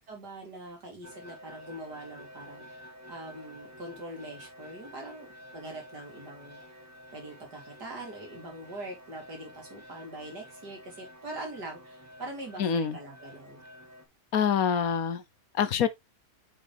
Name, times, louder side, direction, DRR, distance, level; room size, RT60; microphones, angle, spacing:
voice 1, 0.1-5.3 5.5-6.8 7.1-13.6, right 1 dB, 80° right, 3.9 m, -43 dB
sound 1, 1.0-14.1, equal, 10° right, 1.8 m, -50 dB
voice 2, 12.6-13.0 14.3-15.2 15.5-15.9, left 7 dB, 65° left, 1.2 m, -25 dB
7.2 x 5.8 x 3.4 m
omnidirectional pair, 1.7 m